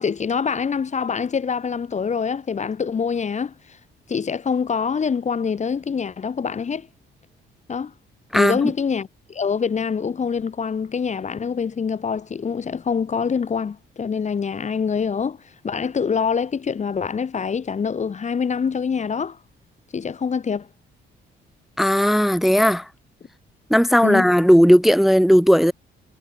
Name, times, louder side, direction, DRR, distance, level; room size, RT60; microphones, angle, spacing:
voice 1, 0.0-3.5 4.1-6.9 7.7-7.9 8.3-15.4 15.6-19.4 19.9-20.7 24.0-24.3, left 6 dB, 35° left, 1.2 m, -25 dB
voice 2, 21.8-22.9 23.7-25.7, equal, ahead, 0.8 m, -16 dB
cardioid pair, 90°, 20 cm